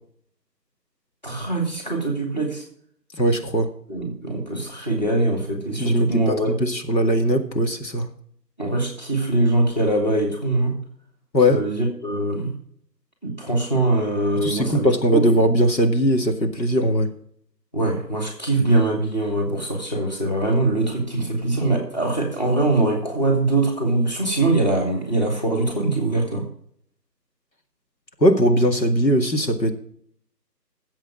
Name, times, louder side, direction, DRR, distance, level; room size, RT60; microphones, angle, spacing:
voice 1, 1.2-2.6 3.9-6.5 8.6-10.7 11.5-12.5 13.2-14.9 15.1-15.2 17.7-26.5, right 2 dB, 25° left, 2 dB, 2.4 m, -22 dB
voice 2, 3.1-3.7 5.8-8.1 11.3-11.6 14.4-17.1 28.2-29.7, equal, 90° left, 5 dB, 2.3 m, -20 dB
14.5 x 8.0 x 6.2 m, 0.65 s
figure-of-eight pair, 180°, 50 cm